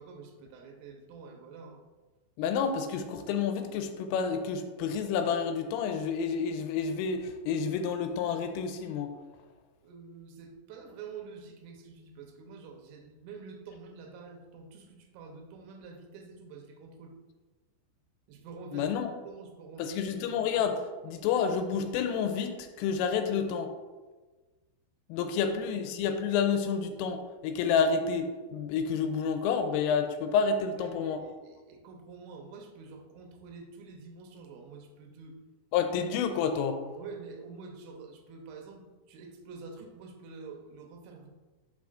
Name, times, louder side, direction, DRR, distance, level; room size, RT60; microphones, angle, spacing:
voice 1, 0.0-1.8 9.8-17.1 18.3-18.9 19.2-20.1 25.7-25.8 30.7-35.4 37.0-41.3, right 4 dB, 85° right, 3 dB, 3.3 m, -47 dB
voice 2, 2.4-9.1 18.7-19.1 19.8-23.7 25.1-31.2 35.7-36.8, left 6 dB, 85° left, 6 dB, 3.1 m, -29 dB
7.3 x 6.0 x 2.4 m, 1.3 s
omnidirectional pair, 5.9 m